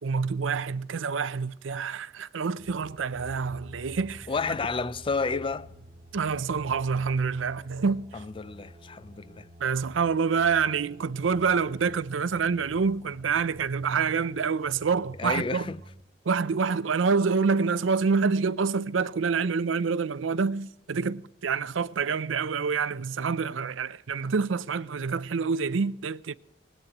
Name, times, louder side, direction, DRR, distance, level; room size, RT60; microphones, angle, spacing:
voice 1, 0.0-4.3 6.1-8.1 9.6-15.7 16.3-26.4, right 5 dB, 90° right, 0.5 m, -27 dB
sound 1, 2.6-16.0, equal, 35° right, 0.9 m, -49 dB
voice 2, 4.3-5.7 8.1-9.5 15.2-15.8, left 4 dB, 25° left, 0.4 m, -31 dB
20.5 x 18.5 x 3.0 m
head